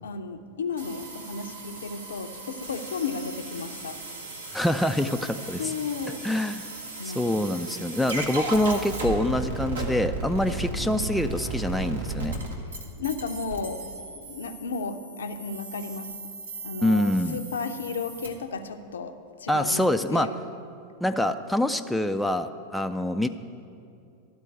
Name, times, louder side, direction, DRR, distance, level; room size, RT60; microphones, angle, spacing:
voice 1, 0.0-4.0 5.6-6.3 7.0-7.6 10.4-10.6 12.6-13.9 14.1-16.2 16.6-20.4, left 4 dB, 65° left, 8 dB, 0.6 m, -34 dB
sound 1, 0.8-18.3, right 3 dB, 70° right, 1.3 m, -36 dB
voice 2, 4.5-5.7 6.2-6.6 7.0-12.3 16.8-17.4 19.5-20.3 21.0-23.3, left 1 dB, 5° left, 7 dB, 0.3 m, -25 dB
12.0 x 4.4 x 8.1 m, 2.6 s
figure-of-eight pair, 90°, 0 cm